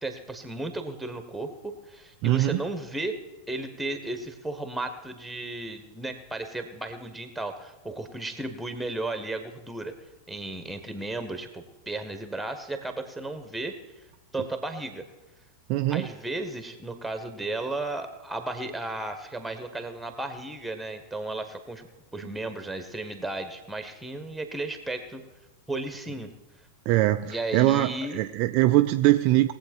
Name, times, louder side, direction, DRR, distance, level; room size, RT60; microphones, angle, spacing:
voice 1, 0.0-3.2 3.5-9.9 10.3-13.8 14.3-15.0 15.9-21.9 22.1-25.2 25.7-26.3 27.2-28.2, right 2 dB, 5° right, 8 dB, 1.5 m, -34 dB
voice 2, 2.2-2.6 15.7-16.0 26.9-29.5, right 16 dB, 45° right, 8 dB, 0.4 m, -22 dB
20.5 x 7.9 x 4.5 m, 1.0 s
figure-of-eight pair, 90°, 0 cm